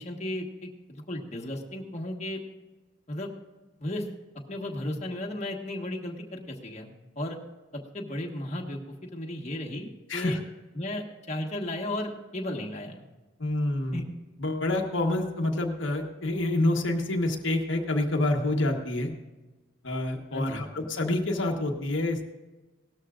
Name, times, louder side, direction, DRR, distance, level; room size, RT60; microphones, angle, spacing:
voice 1, 0.0-2.4 3.1-3.3 3.8-4.1 4.5-7.4 7.9-10.4 10.7-13.0 13.9-14.0 20.3-20.7, left 1 dB, 35° left, 0 dB, 1.4 m, -34 dB
voice 2, 13.4-14.0 14.4-19.1 19.8-22.2, left 1 dB, 70° left, 1 dB, 1.3 m, -27 dB
18.0 x 13.0 x 2.5 m, 1.2 s
head